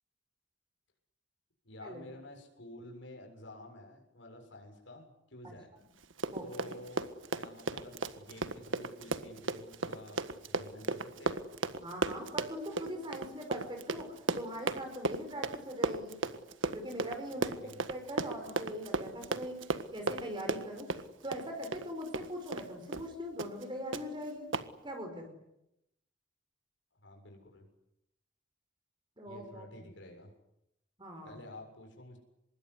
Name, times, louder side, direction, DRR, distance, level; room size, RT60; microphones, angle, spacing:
voice 1, 1.6-5.7 6.4-11.4 17.4-17.8 27.0-27.7 29.2-30.3 31.2-32.2, left 1 dB, 75° left, 2 dB, 7.2 m, -50 dB
Run, 6.0-22.7 22.9-23.1 23.4-23.6 23.9-24.0 24.5-24.7, right 3 dB, 85° right, 1.7 m, -35 dB
voice 2, 6.3-6.8 11.8-16.2 16.7-17.5 17.9-19.6 19.9-20.9 21.2-24.5 24.8-25.3 29.2-29.9 31.0-31.4, equal, 25° right, 4 dB, 5.2 m, -41 dB
25.5 x 22.0 x 9.9 m, 0.84 s
head